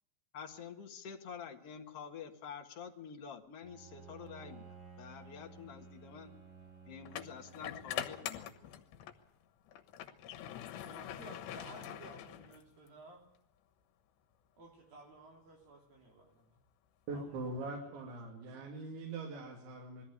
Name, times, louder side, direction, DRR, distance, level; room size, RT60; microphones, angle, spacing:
voice 1, 0.3-6.3 6.9-8.7, left 7 dB, 55° left, 3 dB, 1.7 m, -48 dB
Bowed string instrument, 3.6-9.0, right 5 dB, 25° right, 4.5 m, -55 dB
sound 1, 5.0-5.2 7.1-9.2 9.7-12.9, left 11 dB, 80° left, 3.4 m, -43 dB
voice 2, 10.8-13.3 14.6-16.6 17.1-18.3, right 2 dB, 55° right, 1 dB, 4.8 m, -55 dB
voice 3, 17.1-20.0, right 3 dB, 85° right, -2 dB, 5.1 m, -42 dB
21.0 x 14.5 x 9.8 m, 0.72 s
omnidirectional pair, 5.1 m